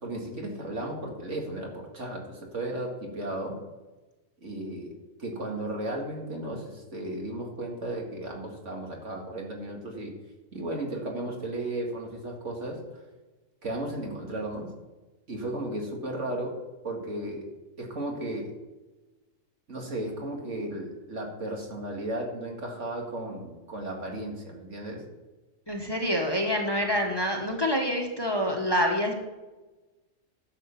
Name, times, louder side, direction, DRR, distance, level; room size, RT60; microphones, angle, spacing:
voice 1, 0.0-3.6 4.4-10.2 10.5-12.8 13.6-14.7 15.3-16.6 16.8-17.5 17.8-18.6 19.7-25.0, right 1 dB, 60° right, 0 dB, 2.4 m, -35 dB
voice 2, 25.7-29.1, equal, 20° left, 1 dB, 1.4 m, -26 dB
11.5 x 7.3 x 5.9 m, 1.1 s
omnidirectional pair, 1.4 m